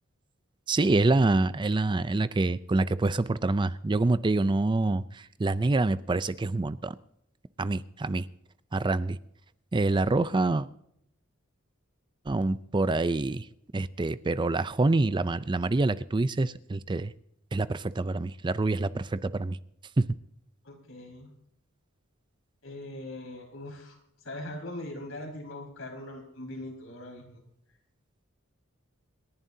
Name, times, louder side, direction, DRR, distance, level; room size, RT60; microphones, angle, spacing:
voice 1, 0.7-6.9 7.6-8.3 8.7-9.2 9.7-10.7 12.3-13.5 13.7-17.1 17.5-19.6 20.0-20.1, right 2 dB, 20° right, 0.4 m, -26 dB
voice 2, 20.6-21.3 22.6-24.0 24.2-27.4, left 1 dB, 80° left, 5.1 m, -41 dB
27.5 x 11.0 x 2.7 m
head